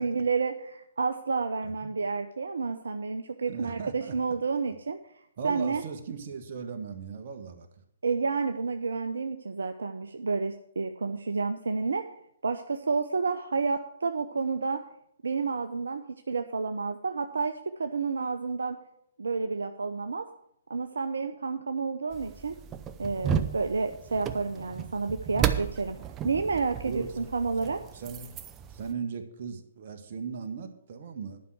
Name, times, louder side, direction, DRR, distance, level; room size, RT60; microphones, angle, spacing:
voice 1, 0.0-5.0 5.4-5.8 8.0-12.0 12.4-14.8 15.2-18.8 19.2-20.3 20.7-22.5 23.0-26.0 26.2-27.8, right 4 dB, 75° right, 7 dB, 0.7 m, -30 dB
voice 2, 1.6-1.9 3.5-4.1 5.4-7.7 26.8-28.4 28.7-31.4, right 6 dB, 50° right, 5 dB, 1.6 m, -38 dB
sound 1, 22.1-28.9, right 9 dB, 20° right, 0.7 m, -34 dB
11.0 x 5.7 x 7.8 m, 0.72 s
figure-of-eight pair, 130°, 0 cm